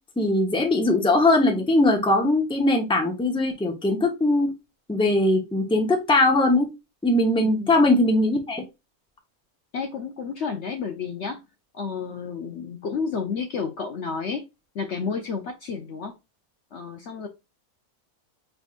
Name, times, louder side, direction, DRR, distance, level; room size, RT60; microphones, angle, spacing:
voice 1, 0.2-4.5 4.9-6.7 7.0-8.6, left 2 dB, 5° left, 1 dB, 0.8 m, -20 dB
voice 2, 7.4-8.0 9.7-11.4 11.7-14.4 14.7-16.1 16.7-17.3, left 5 dB, 60° left, 5 dB, 0.9 m, -31 dB
5.5 x 3.5 x 2.5 m, 0.24 s
omnidirectional pair, 1.6 m